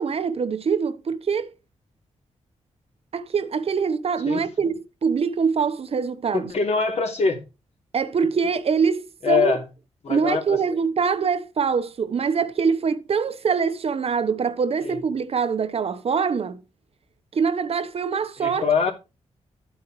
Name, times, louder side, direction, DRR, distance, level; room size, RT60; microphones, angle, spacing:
voice 1, 0.0-1.5 3.1-4.7 5.0-6.5 7.9-9.6 10.1-16.6 17.3-18.6, right 6 dB, 50° right, 0.9 m, -24 dB
voice 2, 6.3-7.4 9.2-9.6 10.0-10.6 14.8-15.0 18.4-18.9, left 5 dB, 60° left, 2.9 m, -23 dB
11.0 x 8.8 x 3.1 m
wide cardioid pair, 110°, 12 cm